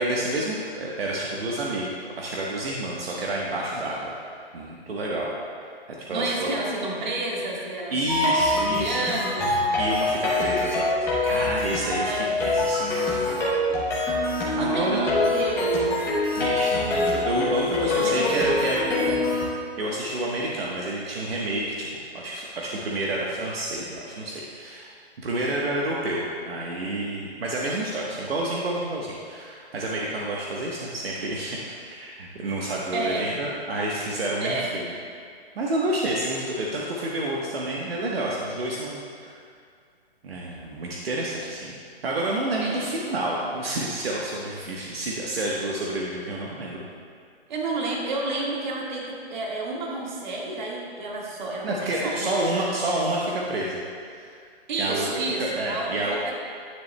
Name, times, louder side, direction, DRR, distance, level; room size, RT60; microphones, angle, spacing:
voice 1, 0.0-1.9 2.2-4.1 4.5-5.3 6.1-6.5 7.9-9.1 9.8-10.9 11.3-13.3 14.6-15.0 16.3-19.4 19.8-21.9 22.1-24.9 25.2-34.8 35.5-39.4 40.2-46.9 51.6-54.4 54.8-55.1 55.4-56.2, right 1 dB, 65° right, -3 dB, 1.2 m, -29 dB
voice 2, 6.1-7.9 8.2-9.5 11.8-12.4 13.2-13.8 14.5-16.0 17.9-18.6 32.9-33.3 34.4-34.8 42.6-42.9 47.5-52.7 54.7-56.3, right 2 dB, 45° right, -2 dB, 1.7 m, -31 dB
sound 1, 8.1-19.5, left 2 dB, 10° left, 0.8 m, -25 dB
10.5 x 9.6 x 2.2 m, 2.2 s
hypercardioid pair, 155°, 32 cm